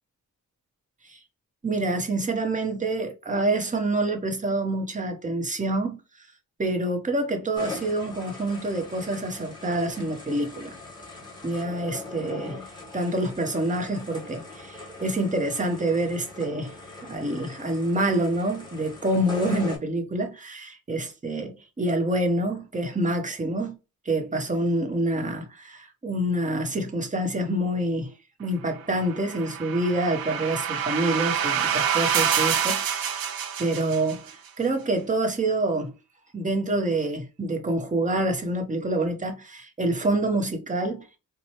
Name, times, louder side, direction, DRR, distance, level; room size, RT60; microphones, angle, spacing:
voice 1, 1.6-6.0 6.6-10.7 11.4-12.6 12.9-16.7 17.1-23.8 24.0-28.1 28.4-34.3 34.6-35.9 36.3-41.1, right 1 dB, 20° right, 0.9 m, -27 dB
sound 1, 7.5-19.8, left 3 dB, 10° left, 1.7 m, -41 dB
sound 2, 29.0-34.3, right 8 dB, 80° right, 0.7 m, -27 dB
4.2 x 2.2 x 2.9 m
wide cardioid pair, 105°, 35 cm